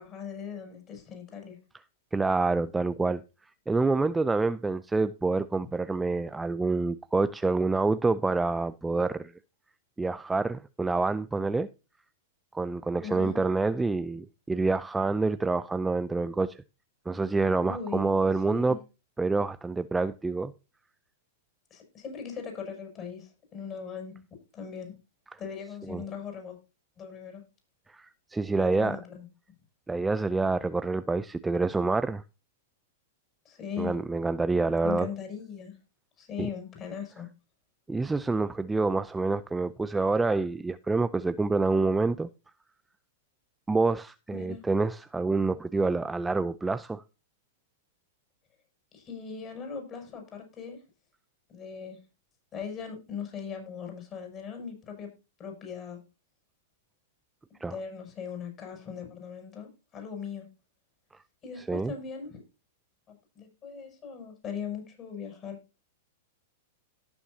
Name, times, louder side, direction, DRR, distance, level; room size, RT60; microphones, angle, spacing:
voice 1, 0.0-1.6 13.0-13.4 17.6-18.1 18.5-18.8 21.7-24.2 24.5-24.9 25.4-26.6 27.0-27.4 28.6-29.3 33.5-34.0 34.8-35.7 36.2-37.3 44.3-44.6 48.9-50.8 51.5-52.0 52.5-55.1 55.4-56.0 57.7-60.5 61.4-62.4 63.1-65.6, left 6 dB, 30° left, 7.3 m, -39 dB
voice 2, 2.1-3.2 3.7-9.3 10.0-11.7 12.5-16.6 17.1-18.8 19.2-20.5 25.3-25.4 25.9-26.0 27.9-29.0 29.9-32.2 33.8-35.1 36.4-36.5 37.9-42.3 43.7-47.0 57.6-57.8 61.7-61.9, right 3 dB, 10° right, 0.5 m, -27 dB
18.0 x 7.1 x 2.8 m
hypercardioid pair, 110°, 0 cm